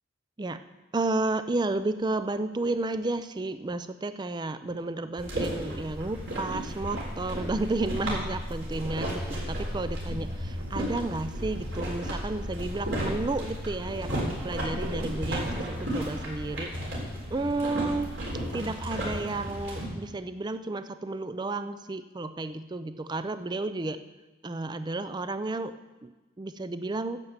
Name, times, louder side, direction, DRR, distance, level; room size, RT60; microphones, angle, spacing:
voice 1, 0.9-16.7 17.3-18.1 18.5-24.0 24.4-25.7 26.0-26.1 26.4-27.2, right 2 dB, 20° right, 12 dB, 0.4 m, -32 dB
sound 1, 5.2-19.8, equal, 65° right, 3.9 m, -33 dB
10.5 x 7.8 x 7.3 m, 1.1 s
head